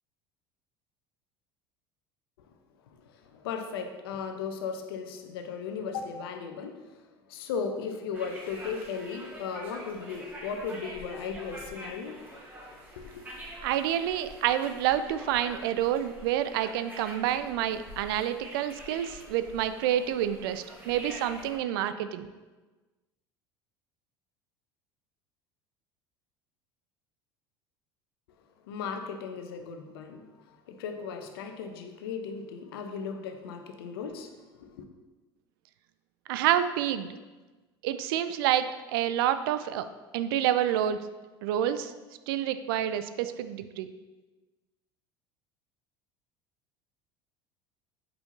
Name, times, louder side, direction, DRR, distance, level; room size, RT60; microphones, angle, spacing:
voice 1, 3.1-6.9 7.3-12.3 12.6-12.7 13.0-13.2 28.7-34.8, left 6 dB, 70° left, 6 dB, 0.8 m, -36 dB
sound 1, 8.1-21.6, equal, 15° right, 2.2 m, -46 dB
voice 2, 13.6-22.3 36.3-37.1 37.8-39.9 40.1-41.0 41.4-41.9 42.3-43.9, right 11 dB, 65° right, 12 dB, 0.4 m, -28 dB
8.0 x 5.5 x 2.8 m, 1.2 s
figure-of-eight pair, 70°, 13 cm